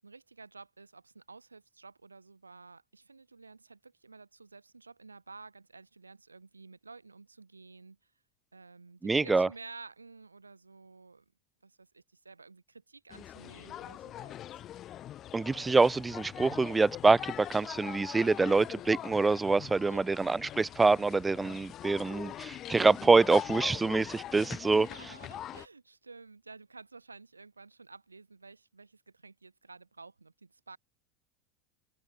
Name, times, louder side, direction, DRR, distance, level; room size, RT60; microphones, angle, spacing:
voice 1, 0.0-8.0 8.5-11.2 11.6-14.6 19.7-20.2 24.7-30.8, right 4 dB, 85° right, 7.9 m, -52 dB
voice 2, 9.0-9.5 15.3-24.9, right 3 dB, 15° right, 0.4 m, -25 dB
sound 1, 13.1-25.7, left 12 dB, 40° left, 2.2 m, -43 dB
open air
figure-of-eight pair, 80°, 0 cm